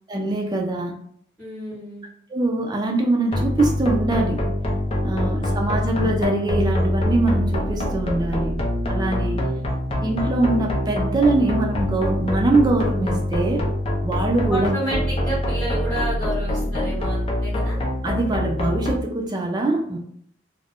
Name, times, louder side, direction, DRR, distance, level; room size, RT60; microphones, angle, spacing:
voice 1, 0.1-0.9 2.3-4.4 5.0-9.4 10.0-13.7 14.0-14.7 18.0-20.0, right 2 dB, 25° right, 2 dB, 0.4 m, -23 dB
voice 2, 1.4-2.0 5.2-5.9 9.5-9.7 14.5-17.8, right 1 dB, 5° left, -9 dB, 1.1 m, -31 dB
sound 1, 3.3-18.9, left 1 dB, 30° left, 0.5 m, -24 dB
2.5 x 2.1 x 3.4 m, 0.64 s
head